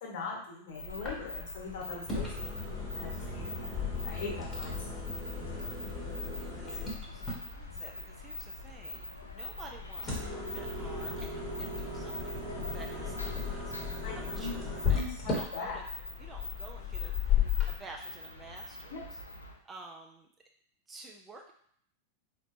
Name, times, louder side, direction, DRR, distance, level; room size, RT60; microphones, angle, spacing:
voice 1, 0.0-2.4 2.9-3.8 4.0-5.0 5.4-5.7 11.6-11.7 14.0-14.5 14.9-15.8 18.9-19.0, left 4 dB, 50° left, -2 dB, 1.1 m, -41 dB
sound 1, 0.7-19.6, left 1 dB, 80° left, 0.4 m, -45 dB
sound 2, 0.9-17.7, left 6 dB, 15° left, 1.1 m, -36 dB
voice 2, 6.3-9.1 9.3-12.4 12.7-15.8 16.2-19.2 19.7-20.3 20.9-21.5, right 3 dB, 15° right, 1 dB, 0.5 m, -51 dB
4.2 x 2.9 x 2.5 m, 0.63 s
figure-of-eight pair, 90°, 0 cm